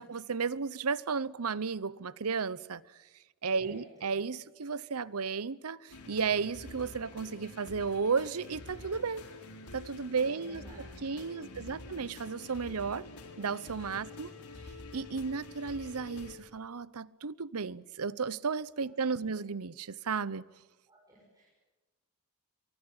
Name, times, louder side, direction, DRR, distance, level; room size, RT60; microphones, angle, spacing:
voice 1, 0.0-2.8 3.4-9.2 9.7-10.6 11.0-13.1 13.4-14.3 14.9-20.4, right 5 dB, 80° right, 0.8 m, -34 dB
voice 2, 3.6-4.1 10.1-12.0 14.0-14.5 18.8-19.3 20.9-21.5, right 1 dB, 15° right, 6.4 m, -56 dB
sound 1, 5.9-16.4, left 2 dB, 90° left, 4.2 m, -48 dB
24.5 x 23.5 x 8.8 m
head